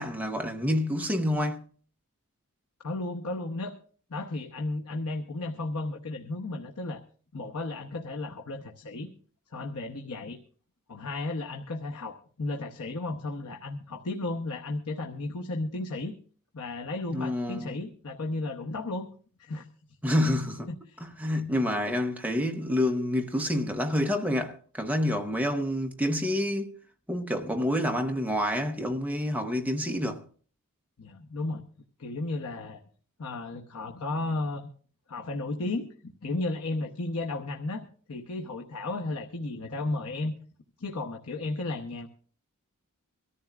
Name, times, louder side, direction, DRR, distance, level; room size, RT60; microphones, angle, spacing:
voice 1, 0.0-1.6 17.1-17.7 20.0-20.7 21.0-26.8 27.1-30.3, left 1 dB, 5° right, 0.9 m, -28 dB
voice 2, 2.8-3.8 4.1-7.0 7.3-9.1 9.5-10.4 10.9-16.1 16.5-19.1 19.4-19.7 20.7-21.0 31.0-31.6 32.0-32.8 33.2-34.7 35.1-35.9 36.2-40.4 40.8-42.1, left 2 dB, 85° left, 1.0 m, -34 dB
23.5 x 14.0 x 2.4 m
head